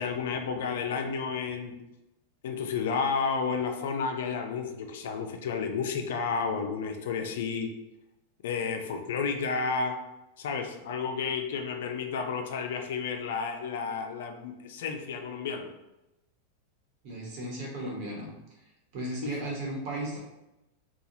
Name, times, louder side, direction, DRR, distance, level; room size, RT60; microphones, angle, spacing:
voice 1, 0.0-1.7 2.4-7.7 8.4-10.0 10.4-15.7 19.2-19.3, left 5 dB, 75° left, 4 dB, 0.5 m, -31 dB
voice 2, 17.0-18.3 18.9-20.2, right 1 dB, 60° right, -3 dB, 1.2 m, -35 dB
2.8 x 2.4 x 3.8 m, 0.95 s
hypercardioid pair, 120°, 0 cm